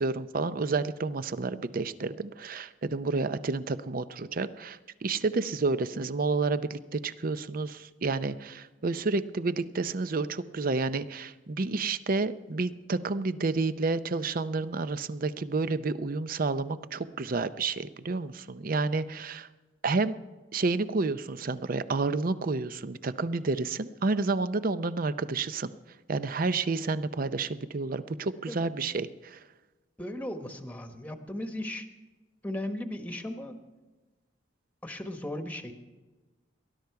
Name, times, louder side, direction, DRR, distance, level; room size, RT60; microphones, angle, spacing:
voice 1, 0.0-19.5 19.8-20.1 20.5-25.7 26.1-29.4, right 3 dB, 50° right, 13 dB, 0.6 m, -30 dB
voice 2, 28.5-28.8 30.0-31.9 32.4-33.5 34.8-35.7, left 1 dB, 10° left, 6 dB, 1.1 m, -36 dB
19.5 x 12.0 x 4.7 m, 1.2 s
head